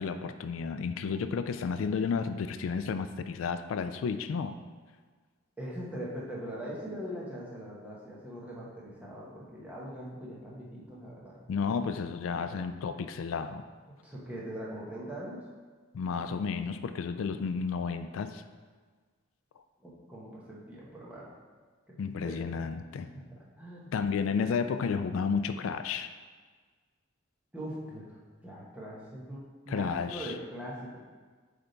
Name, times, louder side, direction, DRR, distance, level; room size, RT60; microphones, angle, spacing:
voice 1, 0.0-4.6 11.5-13.6 15.9-18.4 22.0-23.1 23.9-26.1 29.7-30.3, left 5 dB, 75° left, 9 dB, 0.3 m, -32 dB
voice 2, 5.6-11.4 14.0-15.4 19.8-21.3 21.9-22.0 22.2-22.6 23.1-23.9 27.5-31.0, equal, 5° right, -6 dB, 1.0 m, -41 dB
8.1 x 3.4 x 3.9 m, 1.5 s
head